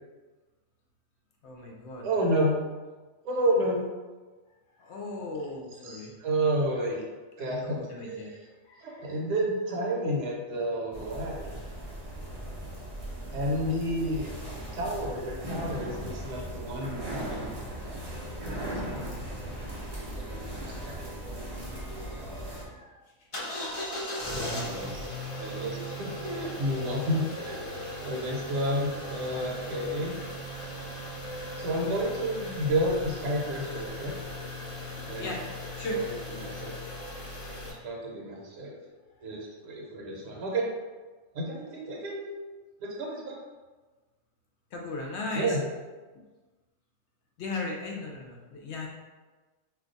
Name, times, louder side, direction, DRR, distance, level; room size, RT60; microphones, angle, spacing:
voice 1, 1.4-2.1 4.8-6.1 7.4-8.3 8.6-9.2 21.4-23.0 35.2-35.4 35.8-36.0 44.7-45.6 47.4-48.9, left 3 dB, 65° left, -1 dB, 0.7 m, -38 dB
voice 2, 2.0-2.6 3.2-3.8 5.8-7.0 7.4-8.3 8.8-11.5 13.3-14.3 14.7-17.5 17.8-18.0 18.5-18.7 18.9-19.1 19.5-19.8 20.1-21.0 24.2-25.0 25.4-30.2 31.6-34.2 35.1-35.3 35.9-36.1 36.3-36.7 37.7-38.8 39.2-40.7 41.3-42.3 42.8-43.4 45.3-45.6, right 1 dB, 65° right, -2 dB, 1.0 m, -31 dB
sound 1, 10.9-22.7, right 1 dB, 45° right, 0.5 m, -38 dB
sound 2, 23.3-37.7, left 1 dB, 40° left, 0.4 m, -38 dB
2.5 x 2.3 x 3.9 m, 1.3 s
omnidirectional pair, 1.4 m